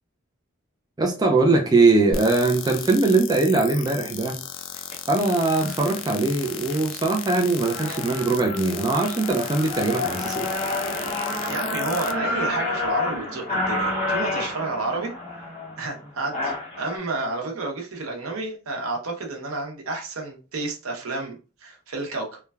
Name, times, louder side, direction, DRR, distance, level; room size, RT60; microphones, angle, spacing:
voice 1, 1.0-4.4 5.1-10.5, right 3 dB, 20° right, 0.3 m, -21 dB
sound 1, 2.1-12.1, left 9 dB, 65° left, 0.3 m, -36 dB
sound 2, 4.8-4.9 5.6-5.8 6.3-6.8 7.2-7.3 7.5-17.0, left 2 dB, 30° left, 0.8 m, -29 dB
voice 2, 11.5-15.1 15.8-22.4, right 3 dB, 85° right, 0.8 m, -30 dB
3.1 x 2.2 x 2.2 m
head